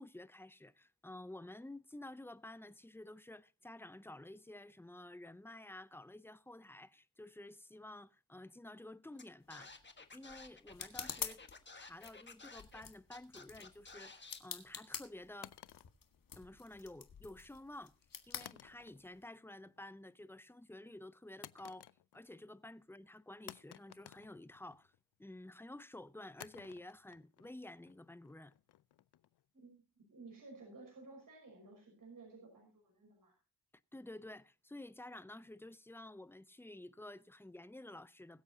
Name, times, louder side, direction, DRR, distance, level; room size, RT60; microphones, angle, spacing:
voice 1, 0.0-9.8 10.1-11.4 11.7-15.5 16.4-17.9 18.3-21.9 22.1-24.9 25.2-28.5 33.9-38.4, left 1 dB, 5° left, 0.5 m, -52 dB
Scratching (performance technique), 9.2-9.3 9.5-12.8 13.1-14.4, left 4 dB, 25° left, 1.4 m, -54 dB
sound 1, 9.4-19.3, left 7 dB, 55° left, 1.7 m, -49 dB
sound 2, 15.4-16.8 18.4-19.2 19.6-20.0 21.4-22.4 22.7-22.8 23.5-25.0 26.4-29.4, left 12 dB, 70° left, 0.6 m, -56 dB
voice 2, 29.5-33.3, right 3 dB, 50° right, 5.7 m, -55 dB
21.5 x 8.0 x 2.8 m
cardioid pair, 95°, 41 cm